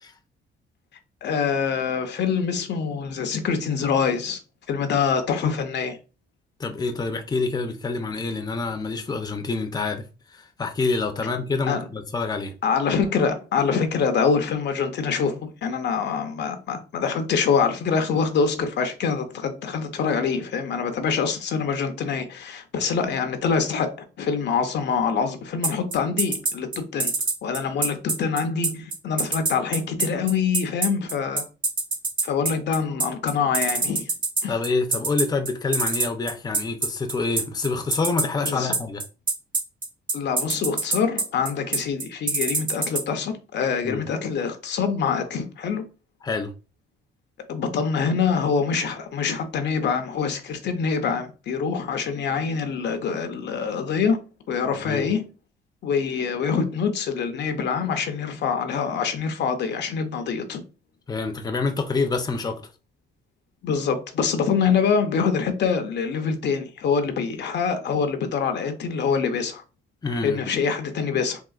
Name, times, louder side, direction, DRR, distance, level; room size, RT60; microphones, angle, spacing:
voice 1, 1.2-4.4 4.7-6.0 11.7-11.8 12.6-23.9 24.2-27.1 27.4-31.4 32.2-34.1 34.4-34.5 38.4-38.7 40.1-45.8 47.5-54.2 54.5-55.3 55.8-60.6 63.6-69.6 70.2-71.4, left 6 dB, 60° left, 0.6 m, -25 dB
voice 2, 6.6-10.0 10.3-12.5 34.5-39.0 43.8-44.0 46.2-46.5 54.8-55.0 61.1-62.6 70.0-70.4, left 3 dB, 20° left, 0.6 m, -27 dB
sound 1, 25.6-43.0, right 3 dB, 45° right, 1.6 m, -23 dB
3.7 x 2.4 x 2.4 m
cardioid pair, 90°, 20 cm